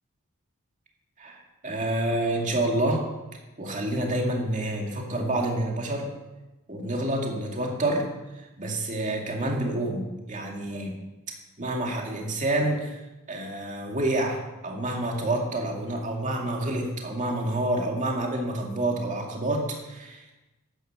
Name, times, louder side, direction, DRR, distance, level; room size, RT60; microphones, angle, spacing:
voice 1, 1.2-3.1 3.6-6.1 6.7-8.1 8.3-10.9 11.6-13.0 13.3-20.2, right 1 dB, 35° right, 0 dB, 2.3 m, -28 dB
11.5 x 9.6 x 6.8 m, 1.1 s
head